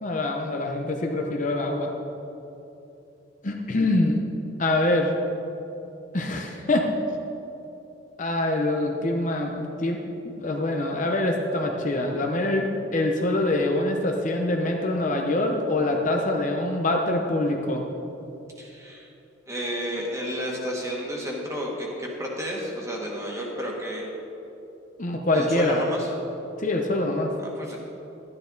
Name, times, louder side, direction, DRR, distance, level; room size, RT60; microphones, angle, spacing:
voice 1, 0.0-1.9 3.4-4.2 4.6-5.2 6.1-6.9 8.2-10.0 10.3-17.8 25.0-25.8 26.6-27.3, left 2 dB, 40° left, 1 dB, 0.8 m, -25 dB
voice 2, 18.6-19.1 19.5-24.0 25.3-26.1 27.4-27.8, equal, 15° right, -2 dB, 1.7 m, -31 dB
12.0 x 11.0 x 4.0 m, 2.9 s
head